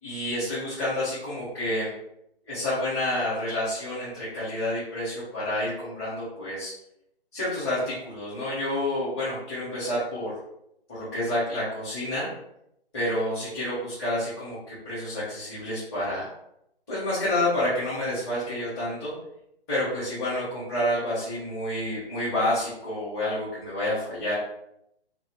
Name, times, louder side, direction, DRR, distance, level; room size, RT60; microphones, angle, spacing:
voice 1, 0.0-1.9 2.5-6.7 7.3-10.4 10.9-12.3 12.9-16.3 16.9-19.1 19.7-24.3, left 1 dB, 25° left, -12 dB, 1.3 m, -29 dB
2.6 x 2.6 x 3.3 m, 0.79 s
figure-of-eight pair, 135°, 30 cm